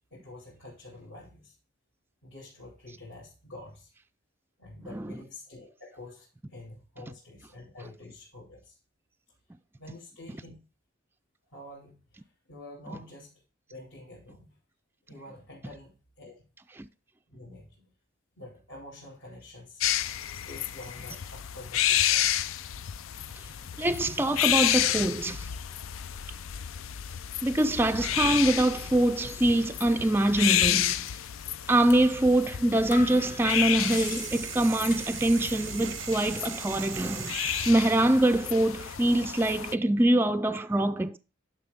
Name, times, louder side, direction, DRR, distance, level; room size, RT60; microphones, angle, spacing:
voice 1, 0.0-1.5 2.2-3.9 4.6-8.8 9.8-10.6 11.5-13.3 13.7-14.6 15.1-16.4 17.3-17.8 18.4-19.8 20.3-22.5, left 2 dB, 70° left, 3.0 m, -47 dB
voice 2, 4.8-5.2 12.9-13.0 16.8-16.9 23.8-25.4 27.4-30.9 31.7-41.2, right 1 dB, 10° right, 0.3 m, -24 dB
sound 1, 19.8-39.7, left 11 dB, 90° left, 0.4 m, -31 dB
sound 2, 31.1-31.3 31.9-32.1 32.4-32.5 32.9-35.5 35.8-36.4, left 5 dB, 40° left, 0.9 m, -42 dB
sound 3, 33.1-39.0, right 11 dB, 90° right, 0.7 m, -40 dB
10.5 x 5.7 x 3.5 m
head